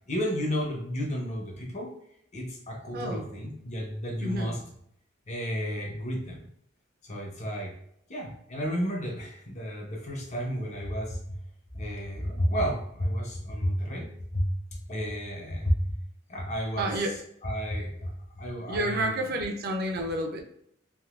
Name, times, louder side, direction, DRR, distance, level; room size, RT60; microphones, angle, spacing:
voice 1, 0.1-1.9 2.3-4.6 5.3-6.5 7.0-7.7 8.1-11.4 11.7-14.5 14.9-16.0 16.3-19.2, equal, 35° left, 2 dB, 0.6 m, -32 dB
voice 2, 2.9-3.3 4.2-4.6 16.8-17.2 18.7-20.4, right 1 dB, 50° right, 3 dB, 0.5 m, -30 dB
3.5 x 2.6 x 2.4 m, 0.71 s
head